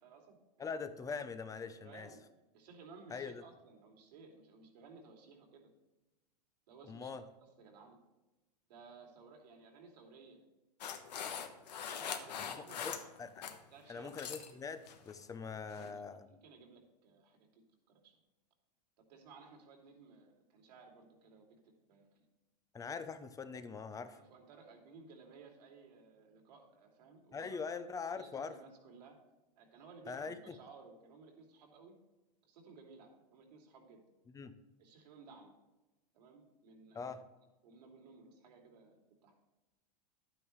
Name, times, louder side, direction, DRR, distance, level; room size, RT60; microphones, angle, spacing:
voice 1, 0.0-0.7 1.7-2.2 2.5-5.7 6.7-7.3 7.6-8.0 8.7-10.4 11.9-13.0 13.7-14.2 15.7-17.6 17.9-18.2 19.1-22.2 24.1-27.8 28.2-29.2 29.6-32.0 32.4-34.0 34.8-35.5 36.1-37.2 37.6-39.3, right 4 dB, 75° right, 2 dB, 2.7 m, -58 dB
voice 2, 0.6-2.1 3.1-3.4 6.8-7.2 12.4-12.5 12.8-13.3 13.9-16.3 22.7-24.2 27.3-28.6 30.1-30.6 34.3-34.5 36.9-37.2, left 5 dB, 15° left, 11 dB, 0.7 m, -43 dB
sound 1, 10.8-13.6 13.9-14.5 14.9-15.1 15.7-15.9, left 8 dB, 85° left, 1.1 m, -42 dB
11.0 x 8.9 x 3.1 m, 1.0 s
hypercardioid pair, 120°, 21 cm